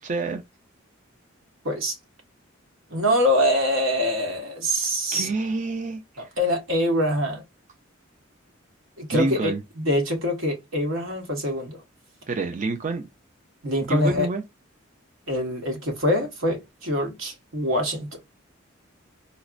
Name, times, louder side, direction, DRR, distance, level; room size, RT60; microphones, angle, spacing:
voice 1, 0.0-0.4 5.1-6.3 9.1-9.6 12.3-13.1 13.9-14.4, right 3 dB, 40° right, 0.5 m, -28 dB
voice 2, 1.6-1.9 2.9-5.3 6.2-7.4 9.0-11.8 13.6-14.3 15.3-18.1, equal, 80° right, 1.3 m, -24 dB
4.1 x 2.0 x 2.4 m
head